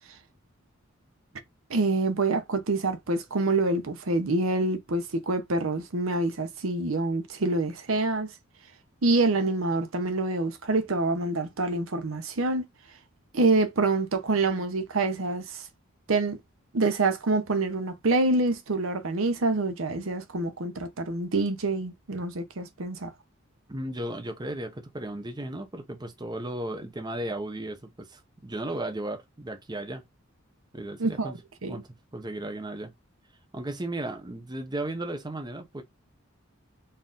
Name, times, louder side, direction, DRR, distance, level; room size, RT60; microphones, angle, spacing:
voice 1, 1.7-8.3 9.0-12.6 13.3-15.7 16.1-16.4 16.7-23.1 31.0-31.3 31.6-31.8, right 2 dB, 80° right, 0.8 m, -26 dB
voice 2, 23.7-30.0 30.7-31.4 31.7-31.9 32.1-32.9 33.5-35.8, right 1 dB, 20° right, 0.7 m, -35 dB
4.3 x 2.6 x 3.7 m
head